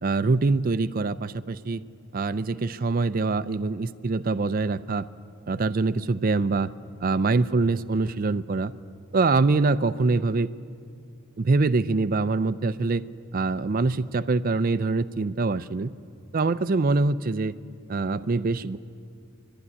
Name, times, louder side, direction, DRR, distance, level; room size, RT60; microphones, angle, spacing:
voice 1, 0.0-1.8 2.1-5.1 5.5-6.7 7.0-8.7 9.1-10.5 11.4-13.0 13.3-15.9 16.3-17.5 17.9-18.8, right 3 dB, 40° right, 14 dB, 0.4 m, -24 dB
24.5 x 12.5 x 9.8 m, 2.5 s
head